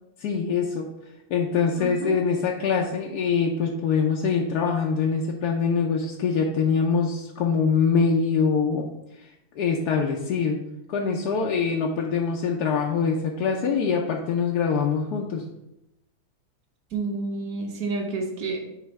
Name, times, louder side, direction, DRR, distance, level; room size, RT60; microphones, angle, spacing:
voice 1, 0.2-0.9 1.3-8.9 9.2-9.3 9.6-10.6 10.9-15.5, left 5 dB, 65° left, -1 dB, 1.0 m, -24 dB
voice 2, 1.8-2.2 16.9-18.7, right 3 dB, 50° right, 2 dB, 1.5 m, -30 dB
9.5 x 3.3 x 4.6 m, 0.87 s
omnidirectional pair, 2.2 m